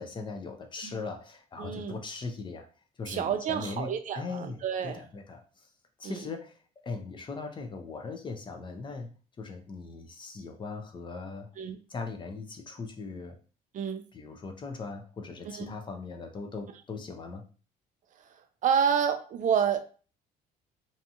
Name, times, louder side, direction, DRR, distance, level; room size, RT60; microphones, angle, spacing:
voice 1, 0.0-2.7 3.0-5.7 6.0-6.6 6.8-11.5 11.9-13.4 14.1-17.4, left 4 dB, 30° left, 5 dB, 0.5 m, -39 dB
voice 2, 1.6-2.0 3.1-5.0 6.0-6.2 11.6-11.8 13.7-14.0 15.5-15.7 18.6-19.8, right 7 dB, 50° right, 8 dB, 0.4 m, -29 dB
2.6 x 2.3 x 2.7 m, 0.37 s
cardioid pair, 110°, 17 cm